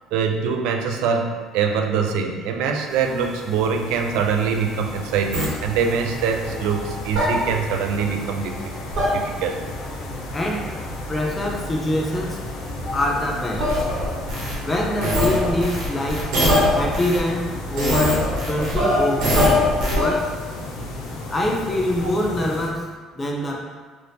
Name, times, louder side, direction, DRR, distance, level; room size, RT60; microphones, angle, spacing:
voice 1, 0.1-8.6 9.1-9.6, right 6 dB, 90° right, 4 dB, 0.3 m, -23 dB
sound 1, 2.9-22.7, left 1 dB, 85° left, 0.5 m, -33 dB
sound 2, 5.3-5.5 7.1-7.3 8.9-9.1 13.6-14.5 15.0-17.2 17.8-20.1, left 1 dB, 70° right, 1.0 m, -21 dB
voice 2, 10.3-10.7 11.1-12.4 12.9-13.7 14.6-16.3 16.7-19.3 19.8-20.3 21.3-22.9 23.1-23.6, left 1 dB, 15° left, -1 dB, 0.4 m, -24 dB
3.3 x 2.6 x 2.7 m, 1.4 s
cardioid pair, 170°, 0 cm